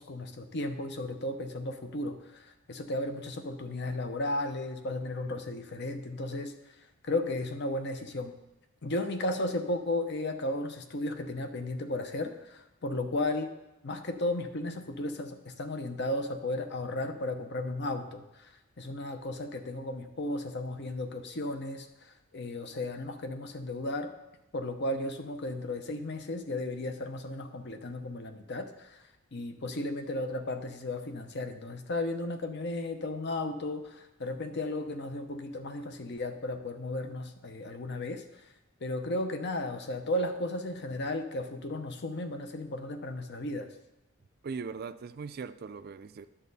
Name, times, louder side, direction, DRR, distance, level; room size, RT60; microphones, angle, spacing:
voice 1, 0.0-6.5 7.0-8.3 8.8-13.5 13.8-18.5 18.8-24.1 24.5-29.0 29.3-38.2 38.8-43.7, left 1 dB, 55° left, 8 dB, 0.8 m, -34 dB
voice 2, 44.4-46.3, right 5 dB, 45° right, 12 dB, 0.4 m, -39 dB
10.0 x 7.5 x 4.1 m, 0.94 s
head